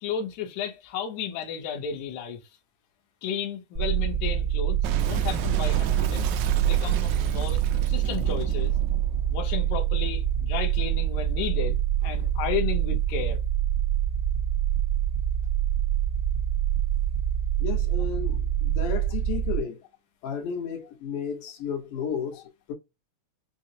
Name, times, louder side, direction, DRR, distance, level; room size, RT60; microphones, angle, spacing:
voice 1, 0.0-2.4 3.2-4.8 5.1-6.3 6.7-8.8 9.3-13.4, left 7 dB, 70° left, 2.2 m, -33 dB
sound 1, 3.8-19.6, right 11 dB, 55° right, 1.0 m, -26 dB
Boom, 4.8-10.1, right 8 dB, 80° right, 1.9 m, -32 dB
voice 2, 17.6-19.8 20.2-22.7, left 7 dB, 90° left, 2.7 m, -33 dB
6.1 x 2.0 x 2.7 m
omnidirectional pair, 3.5 m